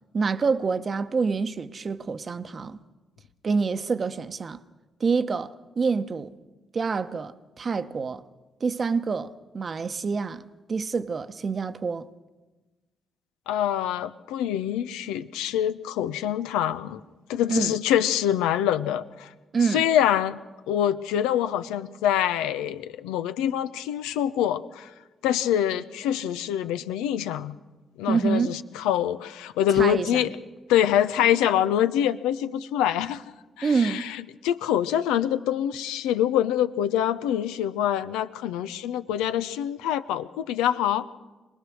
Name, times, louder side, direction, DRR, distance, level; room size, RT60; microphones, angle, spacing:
voice 1, 0.1-2.8 3.4-4.6 5.0-6.3 6.7-8.2 8.6-12.1 17.5-17.8 19.5-19.9 28.1-28.6 29.8-30.3 33.6-34.0, right 5 dB, 50° right, 1.0 m, -27 dB
voice 2, 13.5-17.0 17.3-19.3 19.7-20.4 20.7-24.9 25.2-27.6 28.0-30.3 30.7-33.2 33.6-34.2 34.4-41.1, left 10 dB, 80° left, 0.6 m, -25 dB
24.5 x 20.0 x 6.3 m
hypercardioid pair, 40°, 0 cm